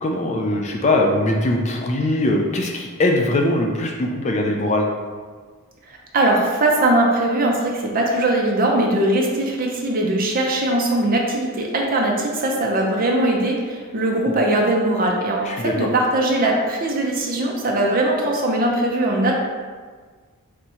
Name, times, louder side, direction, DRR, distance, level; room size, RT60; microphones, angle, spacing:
voice 1, 0.0-4.9 15.5-15.9, left 1 dB, 30° left, 1 dB, 0.3 m, -21 dB
voice 2, 6.1-19.3, right 1 dB, 40° right, 0 dB, 0.6 m, -20 dB
3.5 x 2.8 x 4.3 m, 1.5 s
head